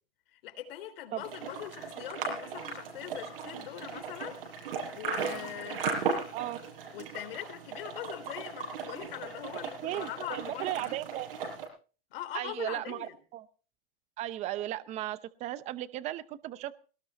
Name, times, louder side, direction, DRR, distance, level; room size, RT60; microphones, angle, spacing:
voice 1, 0.3-4.4 4.9-5.9 6.9-11.0 12.1-13.1, left 12 dB, 70° left, 3.7 m, -42 dB
sound 1, 1.2-11.7, right 5 dB, 70° right, 6.6 m, -37 dB
voice 2, 9.8-11.3 12.3-13.4 14.2-16.7, right 14 dB, 25° right, 0.7 m, -36 dB
21.5 x 19.0 x 3.0 m
supercardioid pair, 160°, 30 cm